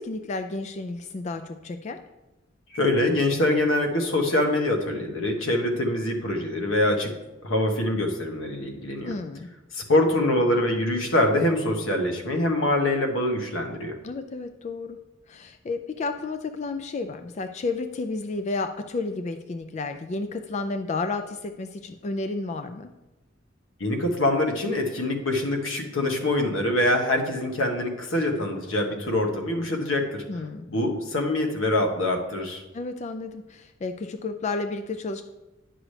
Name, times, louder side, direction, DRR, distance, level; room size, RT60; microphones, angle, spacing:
voice 1, 0.0-2.0 9.0-9.5 14.0-15.0 15.3-22.9 30.3-30.7 32.7-35.2, left 3 dB, 35° left, 8 dB, 0.3 m, -32 dB
voice 2, 2.7-7.1 7.4-9.1 9.7-13.9 23.8-30.2 30.7-32.6, left 1 dB, 85° left, 3 dB, 1.2 m, -24 dB
10.0 x 6.1 x 3.2 m, 1.1 s
head